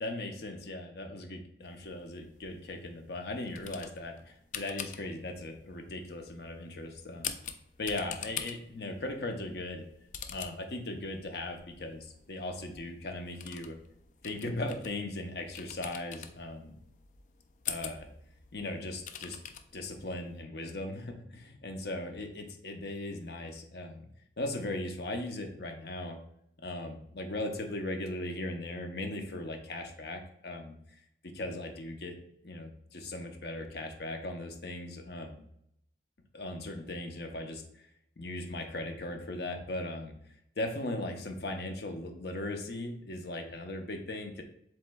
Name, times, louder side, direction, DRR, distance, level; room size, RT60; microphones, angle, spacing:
voice 1, 0.0-7.3 7.8-9.8 10.3-13.8 14.2-16.7 17.7-18.1 18.5-19.4 19.7-24.0 24.4-26.2 26.6-30.8 31.2-32.2 32.4-35.4 36.3-37.6 38.2-40.1 40.6-44.4, left 2 dB, 70° left, 5 dB, 0.7 m, -38 dB
sound 1, 1.6-20.4, left 8 dB, 45° left, 0.3 m, -46 dB
7.5 x 3.1 x 2.3 m, 0.75 s
head